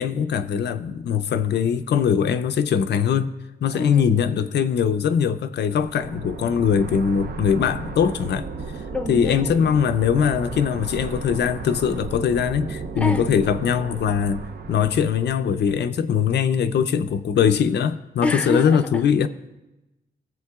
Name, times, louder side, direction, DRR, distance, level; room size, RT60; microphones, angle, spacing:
voice 1, 0.0-3.3 3.6-8.5 9.1-19.3, left 7 dB, 85° left, 0.5 m, -21 dB
voice 2, 3.8-4.2 8.9-9.5 13.0-13.3 18.2-19.1, left 2 dB, 5° left, 0.5 m, -27 dB
sound 1, 5.6-15.5, right 4 dB, 65° right, 0.6 m, -35 dB
21.0 x 7.5 x 2.3 m
wide cardioid pair, 145°, 17 cm